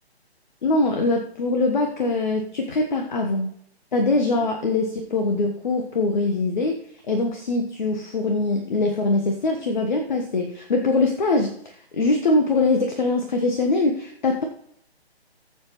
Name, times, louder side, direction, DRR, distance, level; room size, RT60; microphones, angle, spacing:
voice 1, 0.6-3.5 3.9-6.8 7.1-14.4, left 2 dB, 45° left, 3 dB, 1.3 m, -23 dB
18.5 x 7.0 x 3.1 m, 0.71 s
figure-of-eight pair, 145°, 33 cm